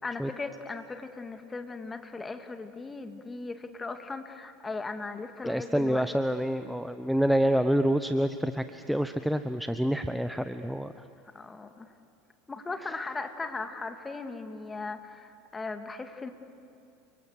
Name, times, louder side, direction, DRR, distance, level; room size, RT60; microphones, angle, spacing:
voice 1, 0.0-6.0 11.3-11.9 12.5-16.3, left 3 dB, 15° left, 7 dB, 2.2 m, -38 dB
voice 2, 5.4-10.9, equal, ahead, 10 dB, 0.9 m, -27 dB
30.0 x 25.0 x 6.5 m, 2.7 s
figure-of-eight pair, 75°, 0 cm